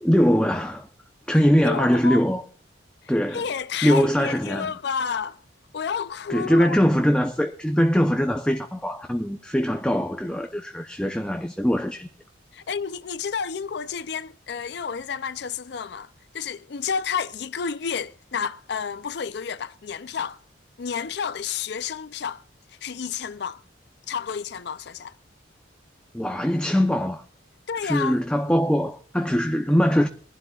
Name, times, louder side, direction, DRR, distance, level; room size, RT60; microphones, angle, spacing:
voice 1, 0.0-0.9 1.3-2.4 3.1-3.4 3.8-4.7 6.3-12.1 26.1-27.2 27.8-30.1, equal, 5° left, 0.7 m, -22 dB
voice 2, 1.6-2.3 3.0-5.4 5.7-6.8 12.5-16.1 16.3-20.4 20.8-22.4 22.7-23.6 24.1-25.1 27.7-28.2, left 6 dB, 60° left, 0.4 m, -30 dB
23.5 x 11.5 x 2.4 m
head